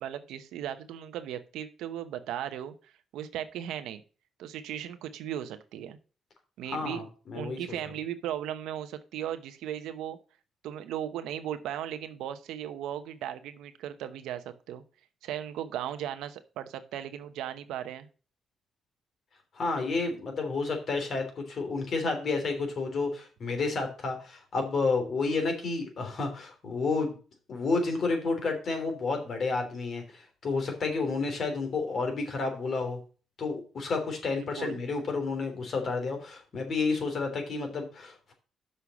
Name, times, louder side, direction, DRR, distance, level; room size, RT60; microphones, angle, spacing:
voice 1, 0.0-2.7 3.1-4.0 4.4-6.0 6.6-7.0 7.3-10.2 10.6-14.8 15.2-18.1 34.3-34.8, right 10 dB, 90° right, 9 dB, 0.9 m, -37 dB
voice 2, 6.7-7.6 19.5-27.1 27.5-33.0 33.4-38.3, left 3 dB, 55° left, 4 dB, 3.1 m, -30 dB
6.4 x 5.6 x 7.0 m, 0.36 s
cardioid pair, 90°, 0 cm